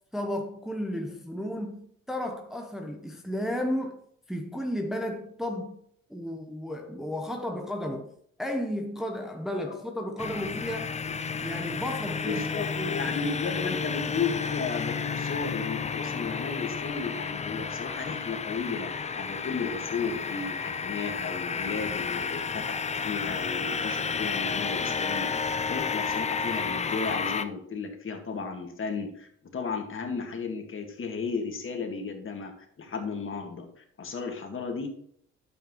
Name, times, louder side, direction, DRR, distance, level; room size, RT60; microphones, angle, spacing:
voice 1, 0.1-4.0 4.3-5.8 6.1-8.1 8.4-11.0 11.4-13.9, left 1 dB, ahead, 0.8 m, -33 dB
sound 1, 10.2-27.5, left 5 dB, 25° left, 0.5 m, -31 dB
voice 2, 12.2-34.9, left 5 dB, 45° left, 1.8 m, -34 dB
9.1 x 7.3 x 3.1 m
cardioid pair, 90°, 30 cm